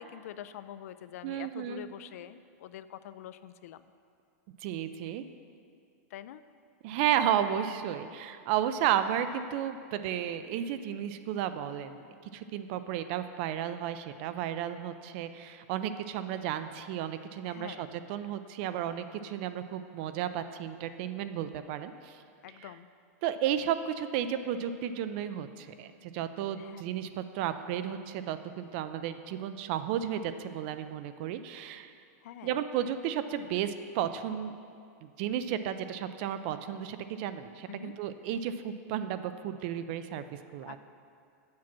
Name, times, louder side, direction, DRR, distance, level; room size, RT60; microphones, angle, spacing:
voice 1, 0.0-3.9 6.1-6.4 17.5-17.9 22.4-22.9 26.6-26.8 32.2-32.6 37.7-37.9 40.7-40.8, left 11 dB, 60° left, 13 dB, 0.4 m, -45 dB
voice 2, 1.2-1.8 4.6-5.2 6.8-12.0 12.3-22.2 22.6-22.7 23.2-31.9 32.4-34.5 35.0-40.8, right 10 dB, 40° right, 11 dB, 0.4 m, -33 dB
7.5 x 5.9 x 7.3 m, 2.3 s
supercardioid pair, 160°, 9 cm